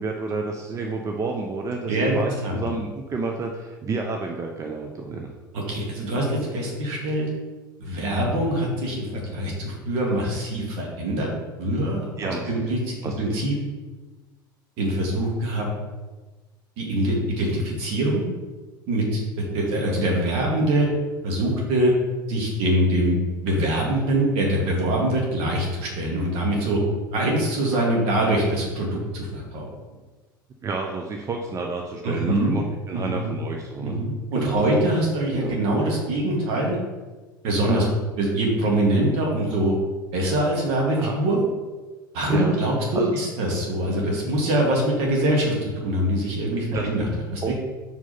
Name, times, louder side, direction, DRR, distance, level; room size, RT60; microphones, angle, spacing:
voice 1, 0.0-5.3 12.2-12.6 13.0-13.4 30.6-34.0 34.3-34.7 35.3-35.6 37.6-37.9 41.0-41.2 42.3-42.6 42.9-43.1 46.5-46.9 47.4-47.5, right 3 dB, 25° right, 2 dB, 0.6 m, -30 dB
voice 2, 5.5-7.3 7.8-11.3 11.6-13.5 14.8-15.7 16.8-18.3 18.9-19.2 19.5-20.9 21.2-21.9 22.3-26.8 27.1-29.7 32.0-32.6 32.9-33.3 33.8-36.8 37.4-37.8 38.2-39.8 40.1-41.4 42.1-47.5, right 1 dB, 55° right, -1 dB, 1.9 m, -24 dB
5.4 x 4.9 x 4.0 m, 1.2 s
figure-of-eight pair, 70°, 12 cm